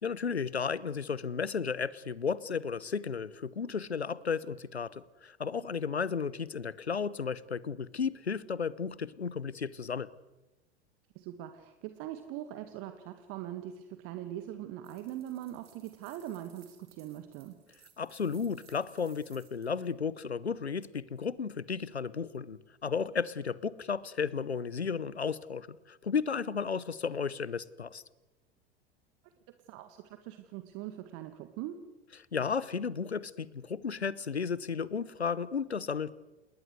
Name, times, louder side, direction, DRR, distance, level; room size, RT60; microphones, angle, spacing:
voice 1, 0.0-10.1 18.0-28.0 32.3-36.1, left 6 dB, 80° left, 20 dB, 1.0 m, -34 dB
voice 2, 11.2-17.6 29.2-29.3 29.7-31.8, right 12 dB, 45° right, 9 dB, 1.9 m, -42 dB
sound 1, 14.8-19.9, right 9 dB, 65° right, 4.4 m, -62 dB
29.0 x 20.0 x 8.0 m, 1.1 s
figure-of-eight pair, 80°, 32 cm